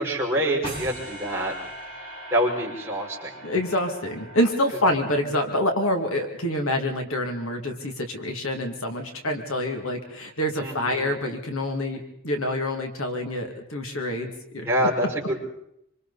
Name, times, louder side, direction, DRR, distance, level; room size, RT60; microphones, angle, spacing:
voice 1, 0.0-1.5 2.3-3.4 10.6-11.1 14.6-15.5, equal, 10° right, -4 dB, 5.9 m, -26 dB
sound 1, 0.6-5.8, right 1 dB, 25° left, 7.7 m, -40 dB
voice 2, 3.4-15.1, left 1 dB, 65° left, 4 dB, 2.5 m, -27 dB
26.5 x 26.5 x 4.2 m, 0.77 s
head